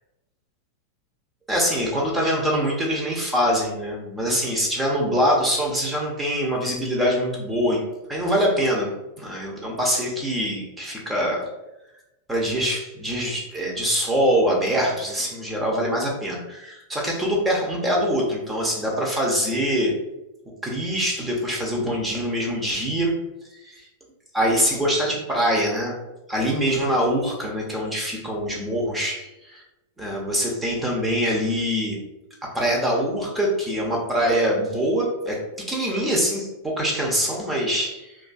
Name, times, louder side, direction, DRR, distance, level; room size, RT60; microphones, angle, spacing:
voice 1, 1.5-8.9 9.2-11.5 12.3-19.9 20.6-23.1 23.5-23.8 24.3-26.0 26.3-29.6 30.0-32.0 32.5-38.2, equal, 10° right, -2 dB, 0.7 m, -24 dB
2.5 x 2.3 x 2.5 m, 0.95 s
hypercardioid pair, 100°, 0 cm